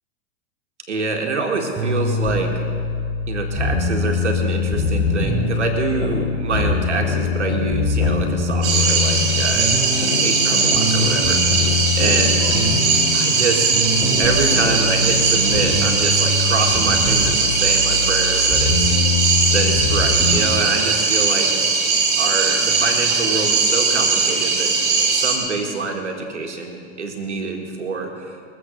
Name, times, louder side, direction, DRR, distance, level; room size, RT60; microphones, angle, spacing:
voice 1, 0.9-2.6 3.3-11.6 12.0-12.6 13.1-13.7 14.2-18.9 19.5-21.5 22.2-24.7 25.1-28.4, right 3 dB, 90° right, 3 dB, 1.9 m, -26 dB
sound 1, 1.7-20.4, left 3 dB, 10° right, 2.6 m, -23 dB
sound 2, 4.8-5.5 6.0-9.5 10.0-13.5 14.0-16.0, left 6 dB, 75° left, 1.6 m, -28 dB
sound 3, 8.6-25.4, right 4 dB, 50° right, 4.7 m, -19 dB
22.0 x 7.9 x 6.5 m, 2.3 s
hypercardioid pair, 110°, 34 cm